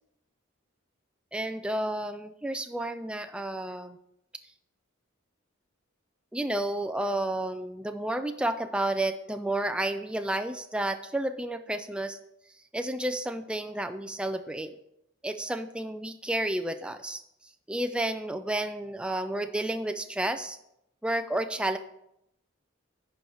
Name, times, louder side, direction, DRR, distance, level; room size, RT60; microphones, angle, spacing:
voice 1, 1.3-4.0 6.3-12.2 12.7-14.8 15.2-17.2 17.7-20.6 21.0-21.8, right 1 dB, 5° right, 7 dB, 0.4 m, -31 dB
10.5 x 4.6 x 5.5 m, 0.81 s
head